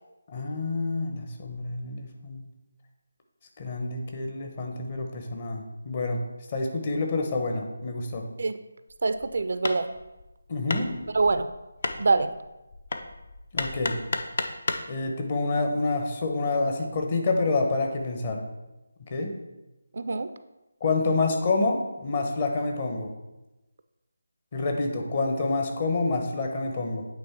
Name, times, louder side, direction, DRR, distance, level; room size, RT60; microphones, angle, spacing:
voice 1, 0.3-2.4 3.6-6.2 6.5-8.3 10.5-10.9 13.5-14.0 14.9-18.4 19.1-19.3 20.8-23.1 24.5-27.1, left 3 dB, 35° left, 3 dB, 1.0 m, -28 dB
Hammer, 8.9-14.9, left 3 dB, 55° left, 0.6 m, -34 dB
voice 2, 9.0-9.9 11.1-11.5 12.0-12.3 19.9-20.3, right 3 dB, 60° right, 11 dB, 0.4 m, -24 dB
8.7 x 3.4 x 4.5 m, 1.0 s
figure-of-eight pair, 160°, 0 cm